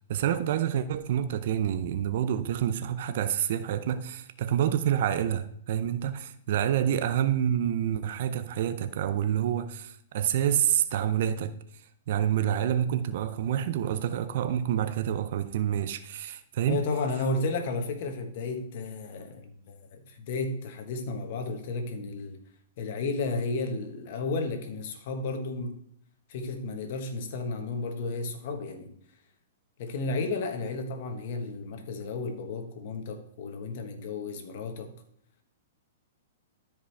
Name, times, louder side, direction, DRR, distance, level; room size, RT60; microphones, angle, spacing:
voice 1, 0.1-11.5 12.1-16.8, right 10 dB, 60° right, 0.5 m, -28 dB
voice 2, 16.7-22.4 22.8-25.8 26.3-28.9 29.8-34.9, left 3 dB, 55° left, 1.4 m, -33 dB
13.0 x 5.0 x 3.4 m
hypercardioid pair, 140°, 0 cm